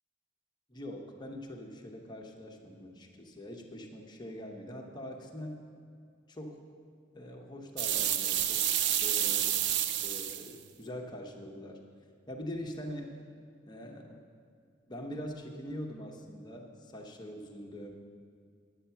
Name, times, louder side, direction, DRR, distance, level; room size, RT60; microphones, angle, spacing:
voice 1, 0.7-5.6 6.3-6.6 7.1-8.6 9.0-9.5 10.0-11.8 12.3-13.1 13.7-14.2 14.9-17.9, equal, 20° left, 1 dB, 0.9 m, -43 dB
sound 1, 7.8-10.5, right 11 dB, 60° right, 0.4 m, -29 dB
9.4 x 8.5 x 5.7 m, 2.3 s
head